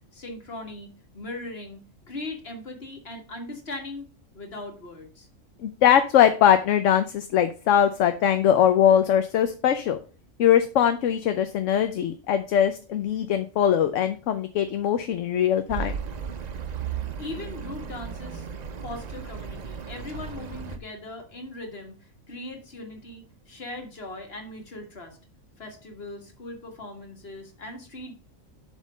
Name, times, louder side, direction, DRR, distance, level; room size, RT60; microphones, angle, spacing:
voice 1, 0.1-4.1 4.3-5.3 17.2-18.5 18.8-25.2 25.6-28.1, left 2 dB, 50° left, 3 dB, 1.9 m, -39 dB
voice 2, 5.6-10.0 10.4-15.9, left 9 dB, 70° left, 9 dB, 0.9 m, -21 dB
Accelerating revving vroom, 15.7-20.8, right 7 dB, 45° right, 0.6 m, -35 dB
7.7 x 3.7 x 6.1 m, 0.36 s
omnidirectional pair, 1.4 m